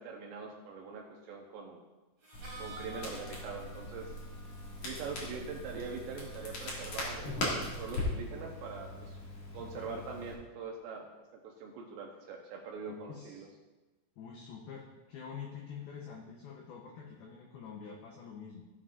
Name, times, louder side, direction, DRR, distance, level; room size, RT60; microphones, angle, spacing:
voice 1, 0.0-1.8 2.6-4.1 4.8-9.2 9.5-11.1 11.4-13.5, right 5 dB, 75° right, 0 dB, 2.7 m, -43 dB
Harmonica, 2.2-8.0, right 1 dB, 25° right, 3.1 m, -53 dB
Crackle, 2.3-10.3, left 1 dB, 45° left, 2.8 m, -40 dB
voice 2, 9.5-10.0 12.9-13.5 14.2-18.6, left 6 dB, 85° left, 0 dB, 2.2 m, -47 dB
16.0 x 7.3 x 2.5 m, 1.1 s
omnidirectional pair, 5.7 m